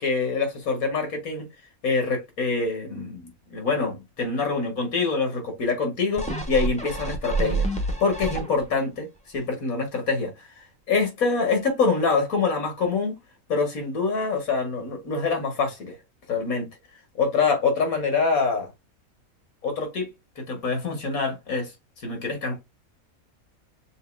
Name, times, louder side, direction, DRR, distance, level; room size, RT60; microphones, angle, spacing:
voice 1, 0.0-1.5 1.8-7.7 8.0-13.2 13.5-16.0 16.3-16.7 17.1-18.7 19.6-21.7 22.0-22.6, left 4 dB, 75° left, 2.1 m, -25 dB
sound 1, 6.2-8.9 9.4-9.5, right 2 dB, 5° left, 1.0 m, -28 dB
6.6 x 2.7 x 2.5 m
omnidirectional pair, 1.5 m